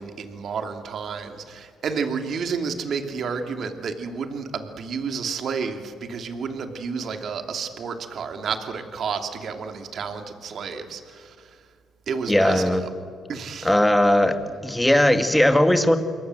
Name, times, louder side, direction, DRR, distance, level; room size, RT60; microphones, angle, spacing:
voice 1, 0.0-11.5 12.1-12.9 13.3-13.7, right 5 dB, 60° right, 6 dB, 2.7 m, -31 dB
voice 2, 12.3-12.8 13.6-14.4 14.6-16.0, left 1 dB, 5° left, 8 dB, 2.3 m, -18 dB
28.0 x 22.5 x 7.8 m, 2.1 s
cardioid pair, 90°, 0 cm